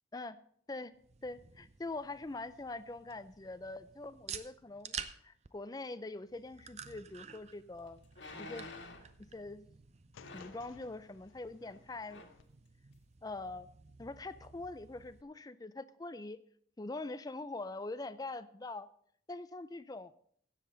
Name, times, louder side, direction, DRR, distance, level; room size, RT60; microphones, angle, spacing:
sound 1, 0.9-15.2, right 7 dB, 35° right, 0.5 m, -51 dB
voice 1, 1.2-5.0 5.2-8.0 8.4-8.7 9.3-9.6 10.3-12.2 13.2-13.7 14.0-16.4 16.8-18.9 19.3-20.1, left 2 dB, 20° left, 14 dB, 0.4 m, -43 dB
sound 2, 7.1-7.2 8.1-9.1 10.2-10.7 11.6-11.8 12.1-12.4 12.9-13.0, left 2 dB, 70° left, 1.6 m, -49 dB
sound 3, 10.1-12.4, left 7 dB, 85° left, 0.4 m, -59 dB
16.5 x 7.4 x 3.9 m, 0.62 s
head